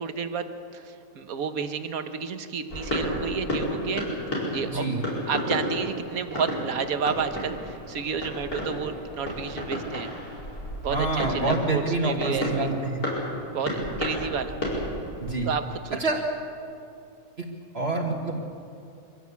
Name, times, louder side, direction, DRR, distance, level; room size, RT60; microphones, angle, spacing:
voice 1, 0.0-4.1 4.5-4.8 5.3-10.1 10.8-12.7 13.5-14.6 15.4-16.0, right 6 dB, 70° right, 8 dB, 1.6 m, -31 dB
sound 1, 2.7-15.4, equal, 85° left, 5.6 m, -32 dB
voice 2, 4.7-5.0 10.9-13.0 15.2-15.5 16.0-16.2 17.7-18.4, right 2 dB, 45° right, -1 dB, 1.9 m, -27 dB
24.0 x 16.0 x 8.3 m, 2.6 s
omnidirectional pair, 1.5 m